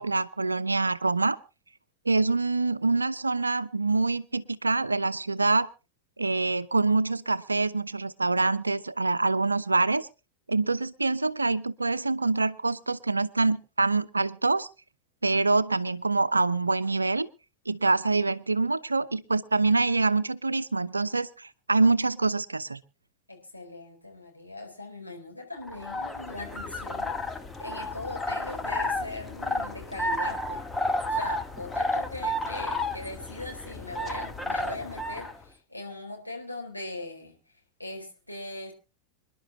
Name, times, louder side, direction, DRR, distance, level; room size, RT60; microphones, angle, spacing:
voice 1, 0.0-1.4 2.0-5.7 6.2-10.1 10.5-14.7 15.2-17.3 17.7-22.8, right 3 dB, 80° right, 16 dB, 0.7 m, -25 dB
voice 2, 23.3-27.2 27.6-30.6 31.1-37.4 37.8-38.7, left 2 dB, 90° left, 1 dB, 4.3 m, -40 dB
sound 1, 25.6-35.4, left 1 dB, 10° left, 1.3 m, -32 dB
26.5 x 11.0 x 2.8 m, 0.32 s
figure-of-eight pair, 90°, 0 cm